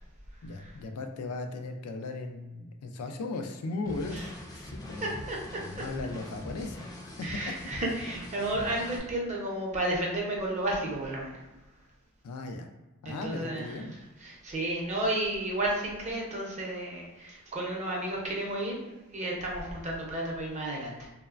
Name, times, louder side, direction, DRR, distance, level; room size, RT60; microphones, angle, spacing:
voice 1, 0.4-5.2 5.6-7.3 12.2-12.7 13.0-13.9, left 3 dB, 85° left, 5 dB, 0.3 m, -37 dB
sound 1, 3.9-9.0, left 1 dB, 15° left, 0.4 m, -43 dB
voice 2, 5.0-5.6 7.2-11.3 13.0-13.7 14.2-21.1, right 1 dB, 30° right, -2 dB, 0.6 m, -32 dB
3.1 x 2.0 x 2.3 m, 1.0 s
head